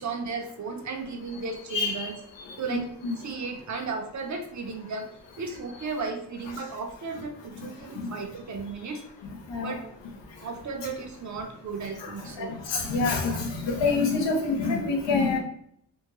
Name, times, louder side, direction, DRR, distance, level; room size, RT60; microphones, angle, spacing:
voice 1, 0.0-2.1 2.6-2.8 3.2-5.1 5.4-9.0 9.6-9.9 10.4-12.5 13.3-13.4, right 4 dB, 40° right, 3 dB, 0.7 m, -35 dB
voice 2, 1.7-2.1 2.7-3.1 7.6-7.7 8.0-8.1 9.5-9.8 12.0-12.1 12.4-15.4, left 3 dB, 80° left, 0 dB, 0.9 m, -27 dB
3.6 x 2.2 x 2.9 m, 0.72 s
cardioid pair, 100°, 43 cm